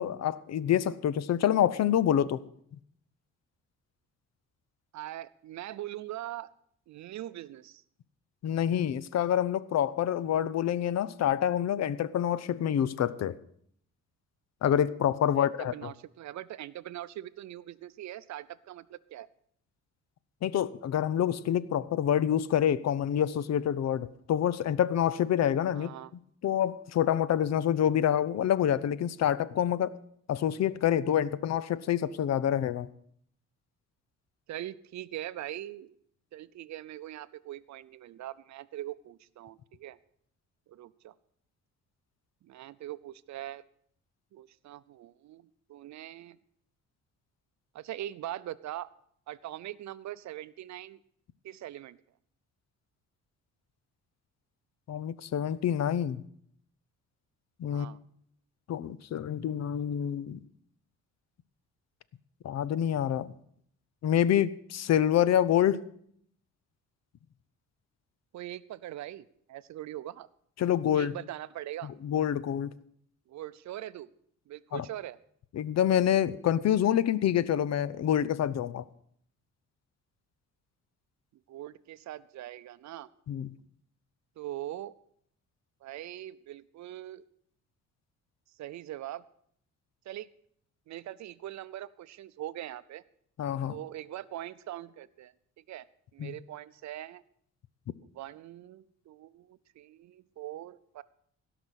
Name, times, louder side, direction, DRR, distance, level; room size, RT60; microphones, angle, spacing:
voice 1, 0.0-2.4 8.4-13.4 14.6-15.7 20.4-25.9 26.4-30.0 30.3-32.9 54.9-56.2 57.6-57.9 58.7-60.4 62.4-63.3 64.0-65.8 70.6-71.2 71.8-72.7 74.7-74.8 75.5-78.8 83.3-83.5 93.4-93.8 96.2-96.3, left 10 dB, 60° left, 18 dB, 0.7 m, -27 dB
voice 2, 4.9-6.5 6.9-7.8 15.4-19.3 25.7-26.1 34.5-35.9 36.3-40.0 40.7-41.1 42.4-43.6 44.3-46.4 47.7-48.9 49.3-51.0 51.4-52.0 57.7-58.0 68.3-70.3 70.9-71.9 73.3-74.1 74.5-75.2 81.5-83.1 84.4-84.9 85.8-87.2 88.6-89.2 90.1-90.3 90.9-93.0 93.7-95.8 96.1-97.2 98.1-101.0, right 13 dB, 65° right, 16 dB, 0.6 m, -42 dB
16.5 x 6.0 x 8.1 m, 0.67 s
cardioid pair, 90°, 30 cm